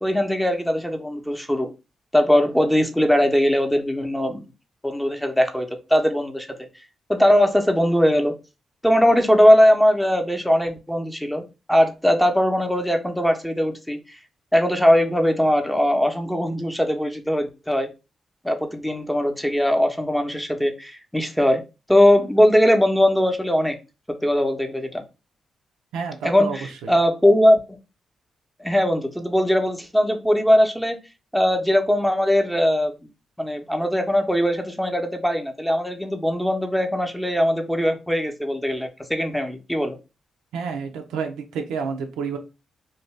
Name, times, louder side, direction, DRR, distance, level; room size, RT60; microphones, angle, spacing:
voice 1, 0.0-1.7 2.1-4.5 4.8-6.5 7.1-8.4 8.8-14.2 14.5-17.9 18.4-21.6 21.9-23.8 24.1-25.0 26.2-27.6 28.6-31.0 31.3-32.9 33.4-40.0, equal, 5° left, 0.7 m, -20 dB
voice 2, 25.9-26.9 40.5-42.4, right 5 dB, 90° right, 0.5 m, -30 dB
2.6 x 2.2 x 3.2 m
supercardioid pair, 55°, 0 cm